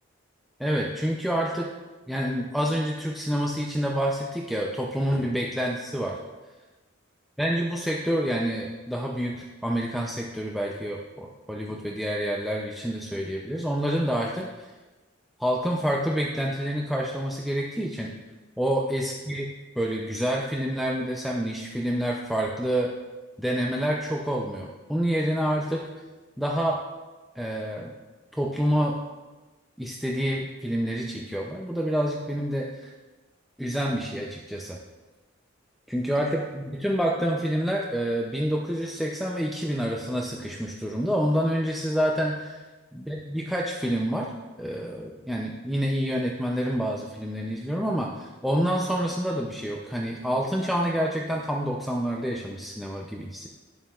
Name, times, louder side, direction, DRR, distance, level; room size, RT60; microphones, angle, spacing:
voice 1, 0.6-1.7 2.1-6.2 7.4-14.7 15.4-18.1 18.6-19.5 19.8-22.9 23.4-25.9 26.4-26.8 27.4-27.9 28.3-29.0 29.8-32.9 33.6-34.8 35.9-42.6 42.9-44.3 44.6-53.5, equal, ahead, -2 dB, 0.4 m, -28 dB
10.5 x 7.1 x 2.4 m, 1.2 s
head